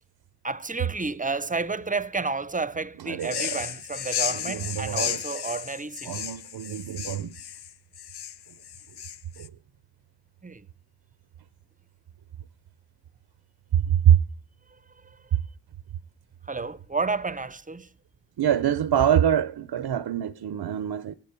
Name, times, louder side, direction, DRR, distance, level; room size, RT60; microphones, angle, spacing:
voice 1, 0.4-6.1 10.4-10.7 15.0-15.2 16.4-17.9, right 4 dB, 20° right, 0.5 m, -31 dB
voice 2, 3.0-3.6 4.3-5.2 6.1-7.4 9.4-9.5 13.9-14.2 18.4-21.2, right 10 dB, 90° right, 0.6 m, -24 dB
sound 1, 3.2-9.5, left 10 dB, 85° left, 0.6 m, -33 dB
17.0 x 7.4 x 6.7 m
wide cardioid pair, 75°, 38 cm